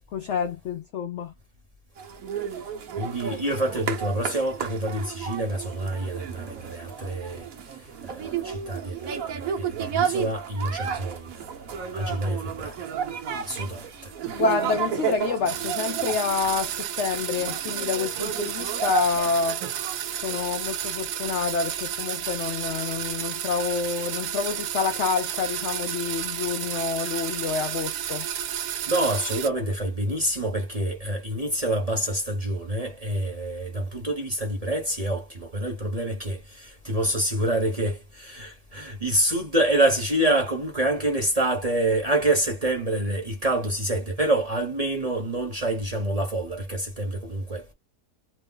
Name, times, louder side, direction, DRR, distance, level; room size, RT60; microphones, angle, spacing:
voice 1, 0.1-1.3 14.3-19.6 20.2-28.3, left 5 dB, 75° left, 0.6 m, -28 dB
sound 1, 2.0-20.5, right 8 dB, 60° right, 1.1 m, -32 dB
voice 2, 2.9-7.5 8.0-12.9 13.4-14.1 20.2-20.3 28.9-47.7, right 1 dB, 30° right, 0.8 m, -27 dB
sound 2, 15.5-29.5, right 10 dB, 90° right, 1.2 m, -32 dB
3.0 x 2.0 x 3.8 m
omnidirectional pair, 1.7 m